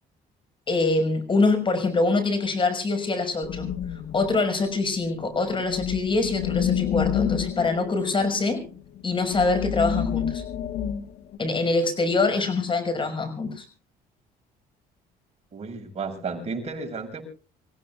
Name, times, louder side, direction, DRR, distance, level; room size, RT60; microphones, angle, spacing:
voice 1, 0.7-3.7 4.1-8.6 9.0-10.4 11.4-13.6, left 3 dB, 30° left, 9 dB, 6.3 m, -24 dB
sound 1, 3.4-4.4 5.5-11.4, left 9 dB, 75° left, 1.6 m, -29 dB
voice 2, 15.5-17.2, right 4 dB, 40° right, 2 dB, 7.4 m, -33 dB
28.0 x 16.5 x 2.4 m, 0.38 s
cardioid pair, 110°, 17 cm